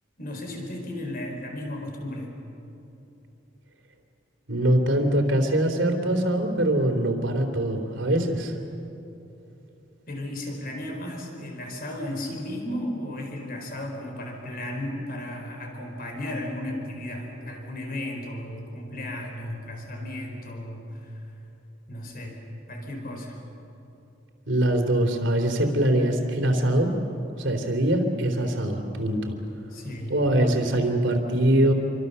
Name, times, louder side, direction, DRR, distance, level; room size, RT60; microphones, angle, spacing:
voice 1, 0.2-2.4 10.1-21.2 21.9-22.4 22.7-23.4 29.7-30.2, left 1 dB, 45° left, 2 dB, 4.6 m, -34 dB
voice 2, 4.5-8.5 24.5-26.9 27.4-29.4 30.1-31.7, right 1 dB, 70° right, 5 dB, 3.2 m, -23 dB
28.0 x 24.5 x 6.9 m, 2.9 s
head